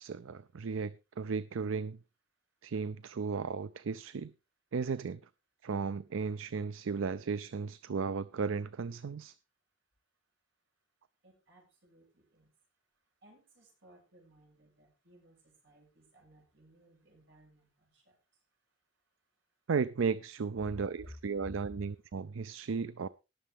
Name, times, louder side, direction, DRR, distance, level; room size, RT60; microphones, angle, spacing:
voice 1, 0.0-2.0 2.6-4.3 4.7-5.2 5.6-9.3 19.7-23.1, right 5 dB, 80° right, 0.5 m, -35 dB
voice 2, 11.2-12.5 13.2-18.2 20.6-20.7 21.0-21.1 21.4-21.9, left 1 dB, 65° right, 6.8 m, -56 dB
19.0 x 6.9 x 3.5 m
head